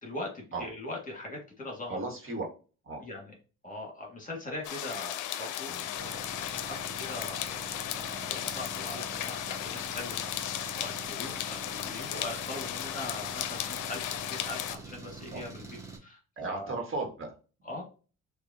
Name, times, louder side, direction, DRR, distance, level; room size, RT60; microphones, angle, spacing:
voice 1, 0.0-2.0 3.0-3.3 3.6-15.6 16.0-16.2 16.5-16.8 17.6-17.8, left 2 dB, 25° left, 0 dB, 1.9 m, -41 dB
voice 2, 1.9-2.4 2.8-3.0 5.7-5.9 15.3-15.4 16.4-17.7, right 3 dB, 45° right, 2 dB, 1.7 m, -36 dB
sound 1, 4.6-14.8, left 12 dB, 80° left, 0.5 m, -35 dB
Engine, 6.0-16.0, right 4 dB, 10° right, 1.3 m, -45 dB
6.2 x 2.7 x 2.8 m, 0.35 s
cardioid pair, 90°, 30 cm